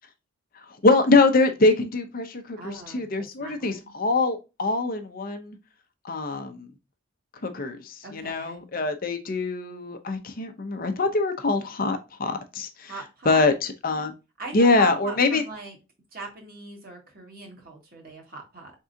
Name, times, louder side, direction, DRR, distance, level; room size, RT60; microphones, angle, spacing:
voice 1, 0.8-5.6 6.0-6.7 7.4-12.9 13.3-14.1 14.5-15.4, left 3 dB, 45° left, 0.6 m, -23 dB
voice 2, 2.6-3.9 8.0-8.6 12.8-13.5 14.4-15.8 16.1-18.7, right 2 dB, 45° right, 1.6 m, -40 dB
4.6 x 3.6 x 2.6 m
head